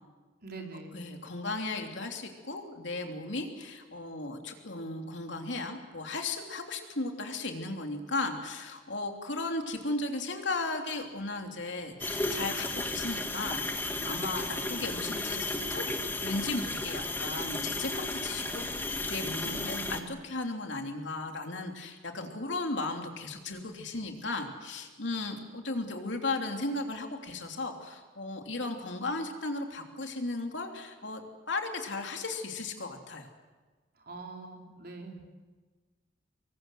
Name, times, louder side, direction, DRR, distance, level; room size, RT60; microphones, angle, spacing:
voice 1, 0.4-1.1 19.4-20.0 34.0-35.3, right 2 dB, 50° right, 1 dB, 4.3 m, -44 dB
voice 2, 0.9-15.9 16.2-31.2 31.5-33.3, left 2 dB, 65° left, 4 dB, 3.2 m, -36 dB
sound 1, 12.0-20.0, left 2 dB, 10° left, 1.7 m, -34 dB
26.0 x 22.5 x 7.8 m, 1.4 s
head